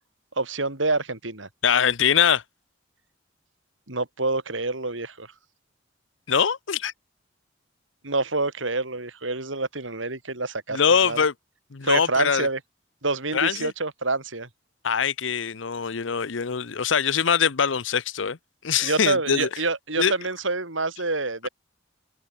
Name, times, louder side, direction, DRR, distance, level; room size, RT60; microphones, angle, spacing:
voice 1, 0.4-1.5 3.9-5.3 8.0-11.2 11.8-12.6 13.0-14.5 18.8-21.5, right 3 dB, 85° right, 4.8 m, -27 dB
voice 2, 1.6-2.4 6.3-6.9 10.7-11.3 11.7-12.5 13.3-13.7 14.8-18.4 18.6-19.5 20.0-20.1, left 7 dB, 80° left, 0.8 m, -23 dB
open air
head